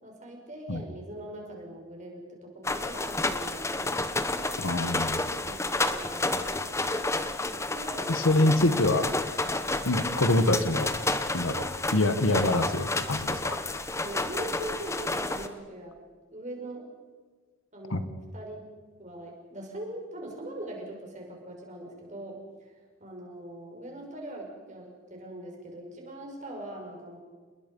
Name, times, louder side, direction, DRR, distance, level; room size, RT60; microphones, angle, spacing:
voice 1, 0.0-4.8 5.5-6.8 7.7-8.4 9.0-9.1 14.0-16.0 16.3-16.9 17.7-18.6 19.0-22.7 23.0-27.2, right 1 dB, 35° right, 0 dB, 5.7 m, -41 dB
sound 1, 2.6-15.5, left 2 dB, 15° left, 1.0 m, -30 dB
voice 2, 4.6-5.2 8.1-9.1 9.8-10.9 11.3-13.6 17.9-18.0, left 2 dB, 70° left, 10 dB, 1.5 m, -25 dB
28.5 x 21.5 x 5.5 m, 1.5 s
head